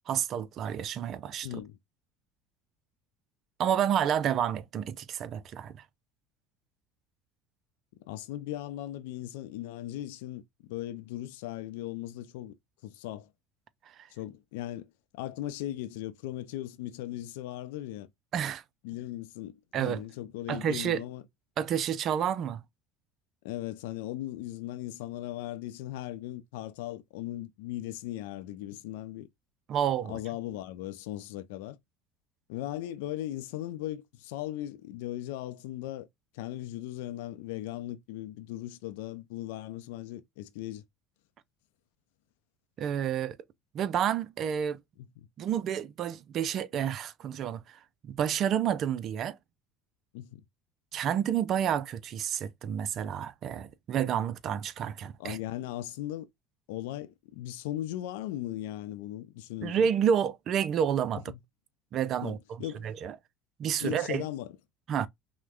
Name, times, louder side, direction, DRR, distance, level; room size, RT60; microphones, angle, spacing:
voice 1, 0.1-1.5 3.6-5.7 18.3-18.6 19.7-20.0 20.5-21.0 21.6-22.6 29.7-30.1 42.8-43.4 43.7-44.8 45.4-49.4 50.9-55.4 59.6-61.2 61.9-62.4 62.8-63.2 63.6-64.2 64.9-65.1, right 9 dB, 50° right, 0.4 m, -29 dB
voice 2, 1.4-1.8 8.0-10.4 10.7-12.5 12.8-13.3 14.1-18.1 18.8-21.2 23.4-29.3 30.1-31.8 32.5-36.1 36.3-40.8 45.0-45.1 50.1-50.4 55.2-56.3 56.7-59.9 61.3-61.4 62.2-62.9 63.8-64.6, left 14 dB, 75° left, 0.5 m, -38 dB
5.8 x 2.2 x 2.4 m
hypercardioid pair, 75°, 0 cm